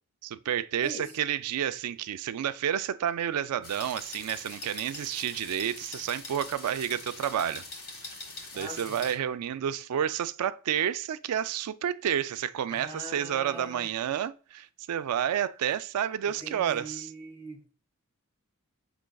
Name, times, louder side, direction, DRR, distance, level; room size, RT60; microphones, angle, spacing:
voice 1, 0.2-7.6 8.5-17.1, right 9 dB, 90° right, 0.3 m, -30 dB
sound 1, 3.6-9.1, left 2 dB, 70° left, 1.5 m, -43 dB
voice 2, 8.5-9.0 12.7-13.9 16.4-17.7, equal, 10° left, 1.5 m, -42 dB
6.3 x 3.1 x 2.2 m
head